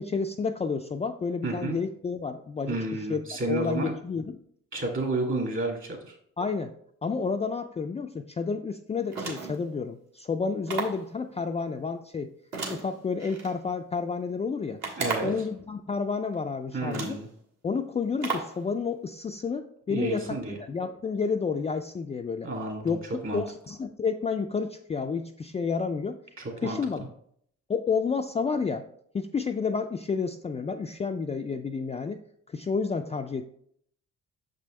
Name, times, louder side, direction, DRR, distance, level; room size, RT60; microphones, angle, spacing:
voice 1, 0.0-3.2 3.5-4.4 6.4-6.7 7.0-12.3 12.7-14.8 15.2-17.2 17.6-20.4 20.7-22.5 22.8-23.0 23.3-26.2 26.6-27.0 27.7-28.8 29.1-32.2 32.5-33.4, left 5 dB, 20° left, 5 dB, 0.3 m, -30 dB
voice 2, 1.4-1.8 2.7-3.9 4.7-6.2 15.0-15.3 16.7-17.3 19.9-20.6 22.4-23.4 26.4-26.8, right 2 dB, 45° right, 0 dB, 2.4 m, -31 dB
sound 1, 9.1-9.7 10.7-11.1 12.5-13.5 14.8-15.5 16.3-16.4 16.9-17.3 18.2-18.6, right 4 dB, 60° right, 1.7 m, -34 dB
6.7 x 5.2 x 3.2 m, 0.67 s
cardioid pair, 90°, 30 cm